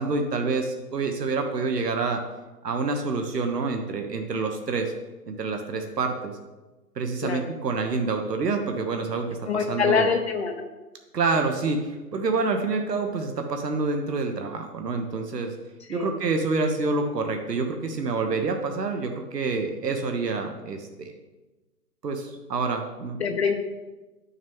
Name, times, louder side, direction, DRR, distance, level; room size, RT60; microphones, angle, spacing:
voice 1, 0.0-2.2 2.6-4.9 5.3-6.3 6.9-9.3 9.5-10.1 11.1-15.5 15.9-21.1 22.0-23.2, right 4 dB, 90° right, 4 dB, 1.3 m, -27 dB
voice 2, 9.5-10.6 15.9-16.1 23.2-23.6, left 5 dB, 45° left, 4 dB, 0.8 m, -24 dB
11.0 x 6.3 x 3.6 m, 1.2 s
hypercardioid pair, 160°, 47 cm